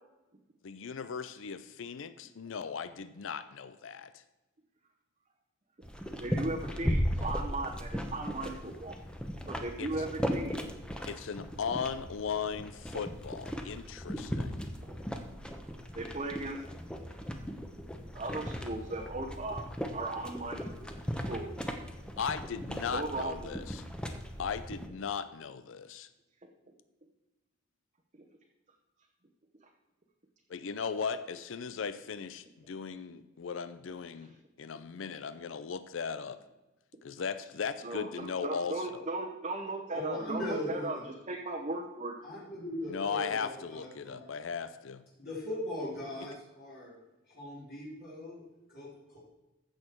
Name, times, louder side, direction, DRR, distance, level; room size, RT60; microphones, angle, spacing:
voice 1, 0.6-4.2 9.8-10.0 11.1-14.6 22.2-23.9 24.4-26.1 30.5-34.3 34.6-36.4 37.0-39.1 42.9-45.0, left 6 dB, 75° left, 13 dB, 0.5 m, -37 dB
sound 1, 5.8-24.9, equal, 5° left, 0.9 m, -37 dB
voice 2, 6.2-9.0 9.5-10.6 14.8-14.9 15.9-16.6 18.1-19.7 19.9-20.7 21.1-21.7 22.9-23.6 37.8-42.1, right 2 dB, 35° right, 1 dB, 0.9 m, -37 dB
voice 3, 39.9-41.0 42.2-44.3 45.2-46.9 47.3-48.4 48.7-49.2, left 1 dB, 50° left, -8 dB, 3.7 m, -39 dB
15.0 x 6.4 x 4.5 m, 1.1 s
head